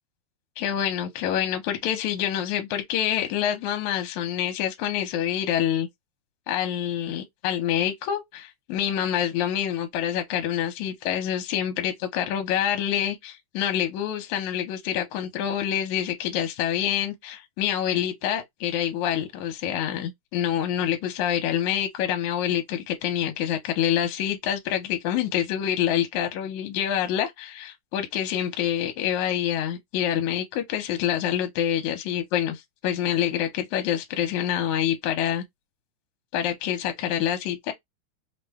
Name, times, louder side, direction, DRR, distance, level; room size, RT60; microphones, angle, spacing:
voice 1, 0.6-5.9 6.5-35.4 36.3-37.7, left 10 dB, 75° left, 2.1 m, -26 dB
5.7 x 2.1 x 3.4 m
omnidirectional pair, 3.6 m